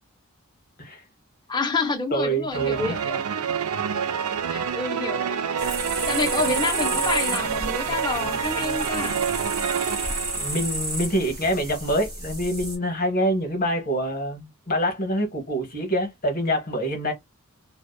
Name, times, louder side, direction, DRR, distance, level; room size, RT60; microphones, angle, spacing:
voice 1, 1.5-3.2 4.5-5.4 6.1-9.2, left 3 dB, 20° left, 0.5 m, -28 dB
voice 2, 2.1-3.0 10.3-17.1, equal, 45° left, 1.0 m, -25 dB
sound 1, 2.5-11.1, right 7 dB, 80° right, 0.3 m, -27 dB
sound 2, 5.6-12.8, right 1 dB, 15° right, 1.0 m, -32 dB
2.7 x 2.0 x 2.3 m
head